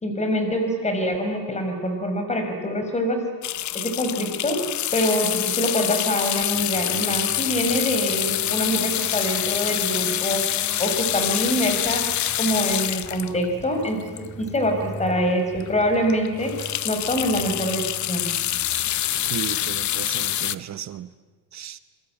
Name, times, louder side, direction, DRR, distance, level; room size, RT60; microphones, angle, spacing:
voice 1, 0.0-3.2 3.7-4.6 4.9-10.4 10.8-12.0 12.4-14.0 14.4-16.5 16.8-18.3, equal, 15° left, 5 dB, 5.2 m, -25 dB
sound 1, 3.4-14.7 15.2-15.3 15.5-15.7 16.0-20.5, left 13 dB, 45° left, 0.9 m, -26 dB
sound 2, 6.5-20.7, right 3 dB, 5° right, 4.3 m, -42 dB
voice 2, 19.3-21.1 21.5-21.8, right 10 dB, 40° right, 13 dB, 1.0 m, -34 dB
27.0 x 22.5 x 8.9 m, 1.4 s
cardioid pair, 135°, 40 cm